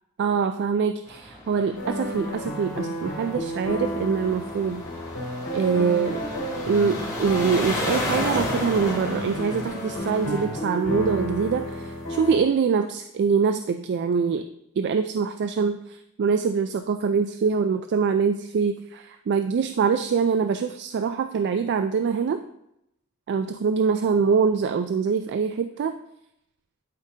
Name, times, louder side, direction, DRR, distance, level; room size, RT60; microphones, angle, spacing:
voice 1, 0.2-4.8 5.5-6.3 6.7-14.5 14.8-22.4 23.3-26.0, right 5 dB, 50° right, 8 dB, 0.3 m, -24 dB
sound 1, 1.1-10.4, left 1 dB, 15° left, 2.4 m, -33 dB
sound 2, 1.7-12.4, equal, 80° left, 3.0 m, -32 dB
11.5 x 5.0 x 2.8 m, 0.81 s
head